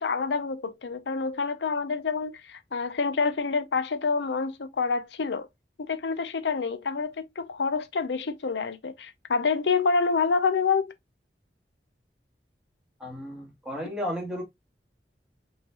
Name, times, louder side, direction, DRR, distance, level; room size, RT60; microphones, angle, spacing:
voice 1, 0.0-5.5 5.8-10.9, left 4 dB, 80° left, 0.6 m, -27 dB
voice 2, 13.0-14.4, equal, 5° right, 1.8 m, -33 dB
6.2 x 3.3 x 2.3 m
head